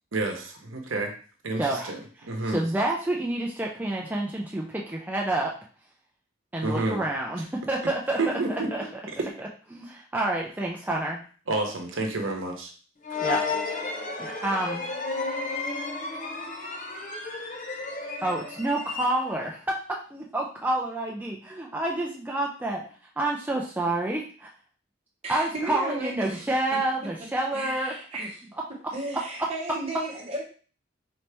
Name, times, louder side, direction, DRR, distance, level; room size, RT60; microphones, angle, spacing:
voice 1, 0.1-1.1 1.4-2.0 2.2-2.6 6.6-7.0 8.2-8.7 11.5-12.7, right 2 dB, 80° right, 2 dB, 0.8 m, -29 dB
voice 2, 1.6-1.9 2.5-5.5 6.5-8.2 8.5-9.0 9.4-11.2 13.2-13.8 14.2-14.8 18.2-19.6 20.1-22.8 23.2-24.5 25.3-28.0, right 2 dB, 10° right, -1 dB, 0.4 m, -28 dB
sound 1, 13.0-19.5, left 3 dB, 40° left, 0.6 m, -32 dB
voice 3, 25.2-26.4 26.7-26.8 27.5-28.4 28.9-30.4, right 1 dB, 30° right, -2 dB, 1.0 m, -34 dB
4.1 x 2.8 x 3.3 m, 0.41 s
head